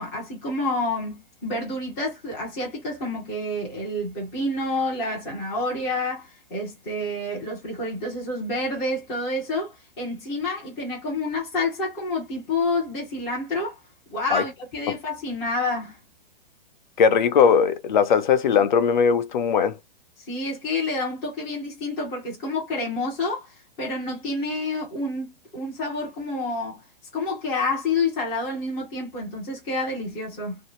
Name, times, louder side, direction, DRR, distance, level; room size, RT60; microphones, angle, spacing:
voice 1, 0.0-13.8 14.1-16.0 20.3-26.8 27.1-30.6, left 2 dB, 5° left, 0.3 m, -28 dB
voice 2, 17.0-19.7, left 6 dB, 50° left, 0.6 m, -19 dB
2.7 x 2.4 x 2.9 m
hypercardioid pair, 160°, 30 cm